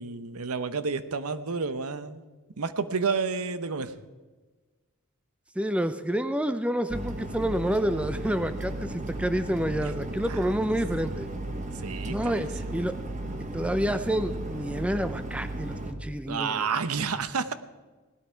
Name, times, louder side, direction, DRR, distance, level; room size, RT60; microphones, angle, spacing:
voice 1, 0.0-2.2 2.6-3.9 9.8-9.9 10.2-10.8 11.0-11.1 11.7-12.7 16.3-17.5, right 5 dB, 85° right, 13 dB, 0.9 m, -31 dB
voice 2, 5.6-11.3 12.1-12.9 13.5-16.7, equal, 5° right, 10 dB, 0.5 m, -28 dB
sound 1, 6.9-15.9, right 1 dB, 35° right, 1.2 m, -35 dB
17.5 x 12.0 x 4.6 m, 1.3 s
head